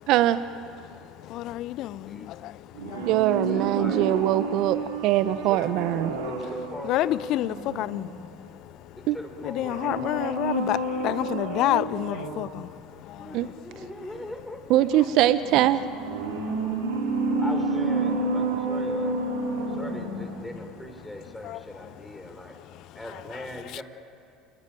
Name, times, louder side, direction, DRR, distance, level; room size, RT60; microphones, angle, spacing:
voice 1, 0.1-0.4 3.1-6.1 9.1-9.2 13.3-13.5 14.7-15.8, right 13 dB, 60° right, 0.9 m, -22 dB
voice 2, 1.2-3.1 6.8-8.1 9.4-12.7 13.1-13.4 14.1-14.2 21.4-21.9 23.0-23.8, left 15 dB, 60° left, 0.7 m, -29 dB
sound 1, 2.7-8.5 9.5-12.6 15.3-20.5 20.8-20.9, right 3 dB, 85° right, 3.8 m, -30 dB
voice 3, 3.4-4.0 5.2-5.3 5.6-5.7 6.2-7.2 9.1-10.4 13.2-14.8 17.3-19.1 19.8-22.5 22.9-23.8, left 1 dB, 5° left, 5.0 m, -40 dB
29.5 x 19.5 x 9.1 m
hypercardioid pair, 70°, 0 cm